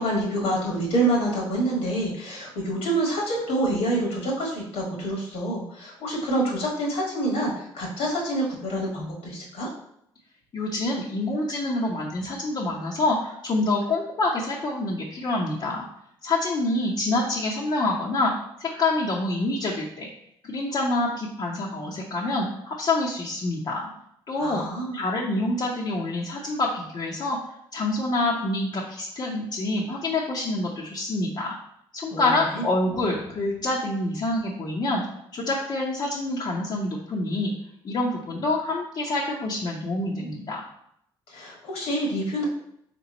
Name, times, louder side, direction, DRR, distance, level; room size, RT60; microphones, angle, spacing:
voice 1, 0.0-9.7 24.4-25.0 32.1-32.7 41.3-42.5, right 1 dB, 75° left, -2 dB, 1.3 m, -27 dB
voice 2, 10.5-15.9 16.2-18.3 18.6-20.1 20.4-23.9 24.3-24.6 24.9-27.4 27.7-31.6 31.9-35.0 35.3-37.5 37.8-40.6, left 2 dB, 45° left, -3 dB, 0.8 m, -26 dB
3.3 x 3.0 x 4.0 m, 0.73 s
supercardioid pair, 70°, 10 cm